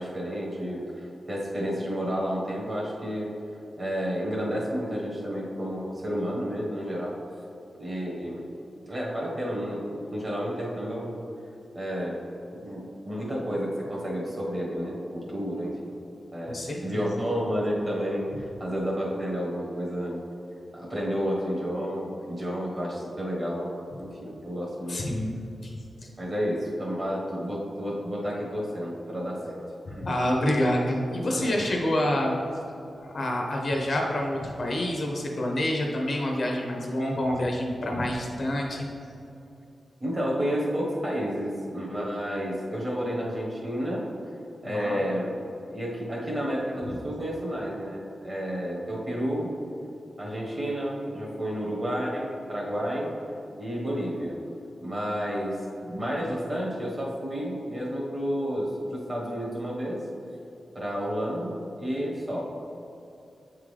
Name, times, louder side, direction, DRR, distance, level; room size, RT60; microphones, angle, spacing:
voice 1, 0.0-3.3 3.8-7.2 7.8-8.5 8.9-11.1 11.7-12.2 12.5-15.9 16.3-20.2 20.7-23.7 24.0-25.0 26.2-29.6 29.9-30.4 31.3-31.6 40.0-44.1 44.6-45.3 45.7-49.5 50.2-53.1 53.6-54.4 54.8-60.0 60.7-62.4, equal, 25° right, -4 dB, 1.2 m, -31 dB
voice 2, 16.5-17.2 24.9-25.4 25.6-25.7 26.0-26.1 30.0-32.3 33.0-38.9 44.6-45.0, left 1 dB, 40° left, 0 dB, 0.6 m, -27 dB
8.0 x 3.6 x 3.2 m, 2.7 s
wide cardioid pair, 175°, 0 cm